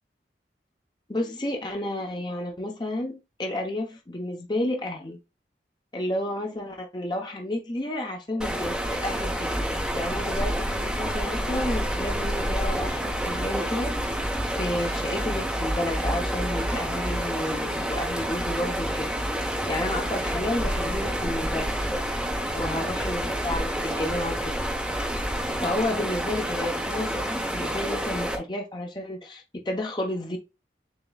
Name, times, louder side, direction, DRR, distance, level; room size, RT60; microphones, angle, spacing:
voice 1, 1.1-5.2 5.9-9.5 9.9-13.9 14.4-19.1 19.7-21.7 22.5-24.5 25.5-30.4, left 1 dB, 25° left, 0.7 m, -31 dB
sound 1, 8.4-28.4, equal, 5° right, 0.9 m, -28 dB
7.0 x 3.0 x 2.3 m
head